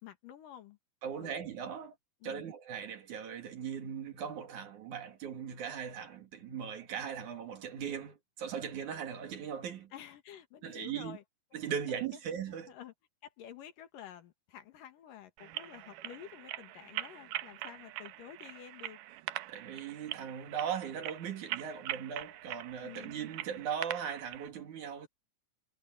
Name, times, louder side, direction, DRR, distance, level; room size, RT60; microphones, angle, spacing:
voice 1, 0.0-0.8 1.2-1.3 2.2-2.5 9.9-11.2 11.5-11.6 12.1-12.2 12.5-12.9 13.2-19.0 22.8-23.1, left 10 dB, 85° left, 3.4 m, -50 dB
voice 2, 1.0-2.0 2.2-9.9 10.6-11.2 11.5-12.7 19.5-25.1, right 8 dB, 65° right, 3.7 m, -39 dB
sound 1, 15.4-24.5, right 15 dB, 85° right, 2.5 m, -42 dB
omnidirectional pair, 3.8 m